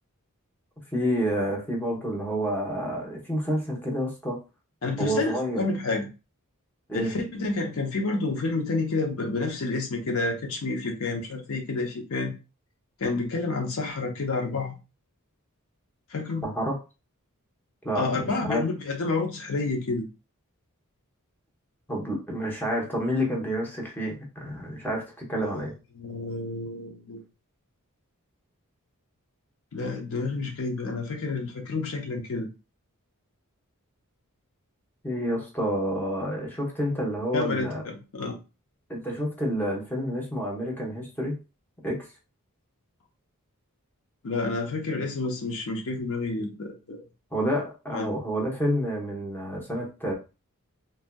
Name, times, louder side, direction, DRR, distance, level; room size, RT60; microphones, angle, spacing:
voice 1, 0.9-4.4 5.0-5.6 6.9-7.1 16.4-16.8 17.8-18.6 21.9-25.7 35.0-37.8 38.9-41.4 41.8-42.0 47.3-50.1, equal, 10° left, -1 dB, 0.9 m, -29 dB
voice 2, 4.8-6.1 6.9-12.3 13.0-14.8 16.1-16.5 17.9-20.0 26.0-27.2 29.7-32.5 37.3-38.4 44.2-47.0 47.9-48.2, left 3 dB, 65° left, 3 dB, 0.7 m, -29 dB
3.3 x 2.6 x 2.2 m, 0.29 s
head